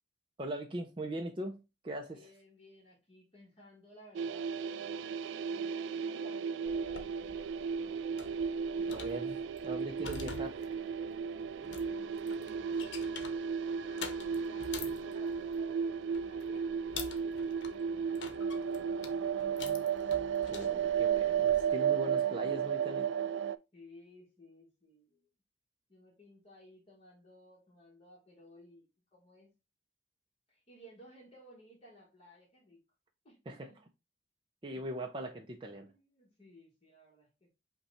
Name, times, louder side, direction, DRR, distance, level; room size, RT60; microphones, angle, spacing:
voice 1, 0.4-1.6 1.8-2.3 8.8-10.7 20.0-20.2 20.5-23.1 33.5-33.7 34.6-35.9, right 1 dB, 30° right, 0.5 m, -40 dB
voice 2, 2.1-5.1 5.4-7.5 11.7-13.0 13.8-16.7 17.7-19.5 23.7-25.3 25.9-28.9 29.1-29.5 30.5-32.8 33.2-33.8 35.8-37.5, equal, 35° left, 1.3 m, -58 dB
sound 1, 4.1-23.5, right 7 dB, 90° right, 0.3 m, -34 dB
sound 2, 6.7-21.7, left 5 dB, 85° left, 0.7 m, -48 dB
5.4 x 2.3 x 4.0 m
head